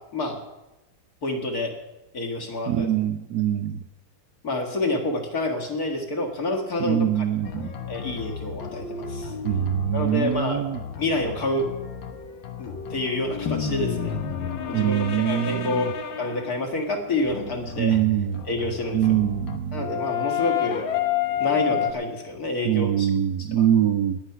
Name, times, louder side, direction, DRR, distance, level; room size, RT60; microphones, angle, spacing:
voice 1, 1.2-1.7 2.1-2.9 4.4-7.3 7.9-9.3 9.9-10.7 11.0-11.7 12.6-14.2 14.7-15.9 16.2-18.0 18.5-19.1 19.7-20.9 21.4-23.1 23.4-23.7, left 2 dB, 50° left, 1 dB, 2.3 m, -28 dB
voice 2, 2.7-3.8 6.8-7.7 9.4-10.8 14.7-15.9 17.8-18.4 18.9-19.8 22.6-24.2, right 10 dB, 70° right, 9 dB, 1.0 m, -23 dB
sound 1, 7.4-16.6 17.2-21.9, left 9 dB, 75° left, 1.9 m, -31 dB
19.5 x 8.1 x 5.8 m, 1.0 s
omnidirectional pair, 2.1 m